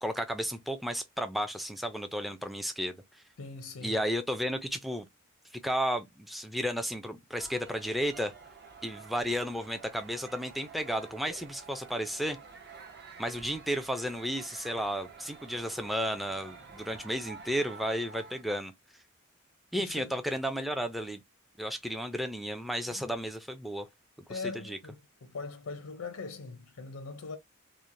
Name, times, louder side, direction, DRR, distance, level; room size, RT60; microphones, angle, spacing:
voice 1, 0.0-3.2 3.8-5.1 5.5-8.3 8.8-12.4 13.2-18.7 19.7-21.2 21.6-23.9 24.3-24.8, equal, ahead, 0.3 m, -33 dB
voice 2, 3.4-4.0 19.7-20.1 22.9-23.0 24.3-27.4, left 4 dB, 85° left, 0.6 m, -41 dB
sound 1, 7.3-18.4, right 4 dB, 55° right, 0.7 m, -50 dB
3.0 x 2.0 x 2.5 m
head